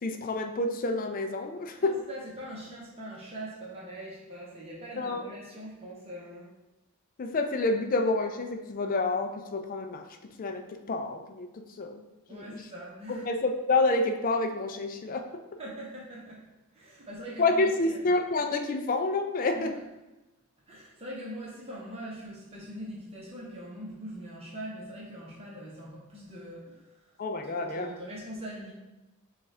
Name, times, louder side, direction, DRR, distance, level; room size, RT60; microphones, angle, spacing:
voice 1, 0.0-1.9 5.0-5.2 7.2-10.0 10.4-12.0 12.3-12.7 13.1-15.2 17.4-19.7 27.2-27.9, left 2 dB, 40° left, 5 dB, 0.4 m, -28 dB
voice 2, 1.8-6.5 12.3-13.3 15.6-16.4 16.7-18.0 19.5-19.8 20.7-26.8 27.4-28.7, equal, 25° right, -5 dB, 0.8 m, -42 dB
6.8 x 2.4 x 3.2 m, 1.0 s
head